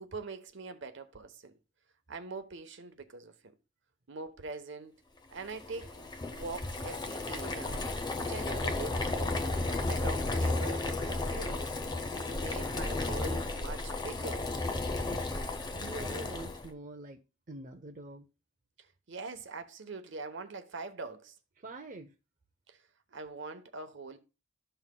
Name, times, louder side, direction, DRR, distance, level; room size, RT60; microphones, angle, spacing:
voice 1, 0.0-1.5 2.1-3.5 4.1-4.9 5.3-9.4 9.9-11.6 12.1-14.5 18.8-21.3 22.7-22.8 23.1-24.2, right 3 dB, 60° right, 0.9 m, -43 dB
Boiling, 5.4-16.7, left 2 dB, 20° left, 0.7 m, -33 dB
voice 2, 15.7-17.2 17.5-18.3 21.6-22.1, right 2 dB, 40° right, 0.6 m, -45 dB
13.5 x 5.6 x 2.2 m
head